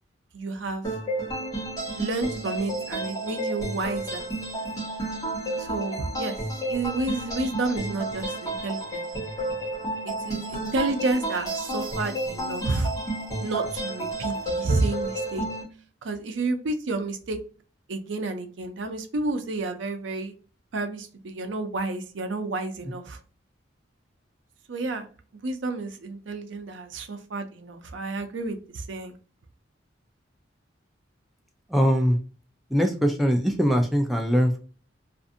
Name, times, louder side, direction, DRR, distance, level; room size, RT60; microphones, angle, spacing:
voice 1, 0.3-0.9 2.0-4.2 5.6-9.1 10.0-12.9 13.4-15.4 16.0-17.4 17.9-20.3 20.7-23.2 24.7-25.1 25.4-29.2, right 2 dB, 80° right, 7 dB, 0.5 m, -30 dB
sound 1, 0.8-15.6, right 1 dB, 20° left, 1.1 m, -31 dB
voice 2, 31.7-32.2 32.7-34.6, equal, ahead, 3 dB, 0.3 m, -22 dB
2.5 x 2.5 x 2.5 m, 0.39 s
head